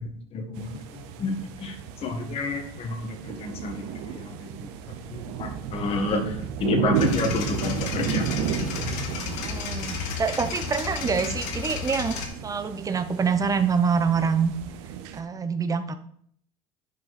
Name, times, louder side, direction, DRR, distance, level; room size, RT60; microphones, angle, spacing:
voice 1, 0.0-0.7 1.2-1.7 2.0-4.3 5.1-6.3 6.6-8.7, left 3 dB, 45° left, 4 dB, 1.8 m, -30 dB
sound 1, 0.6-15.2, right 8 dB, 85° right, 0.9 m, -33 dB
sound 2, 7.0-12.3, left 6 dB, 75° left, 1.9 m, -33 dB
voice 2, 9.2-14.5 15.1-15.9, right 6 dB, 25° right, 10 dB, 0.9 m, -26 dB
10.5 x 5.4 x 4.3 m, 0.65 s
supercardioid pair, 105°, 13 cm